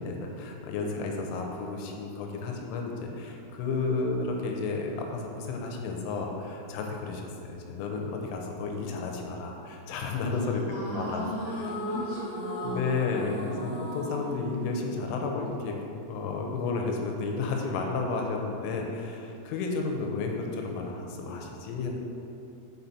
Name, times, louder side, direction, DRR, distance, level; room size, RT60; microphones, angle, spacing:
voice 1, 0.0-10.6 10.9-11.2 12.6-15.7 16.1-22.0, left 4 dB, 85° left, 1 dB, 3.3 m, -32 dB
voice 2, 10.7-13.7, equal, 80° right, -11 dB, 1.9 m, -37 dB
sound 1, 11.3-15.7, equal, 70° left, 2.3 m, -38 dB
5.9 x 5.7 x 4.0 m, 2.7 s
omnidirectional pair, 5.7 m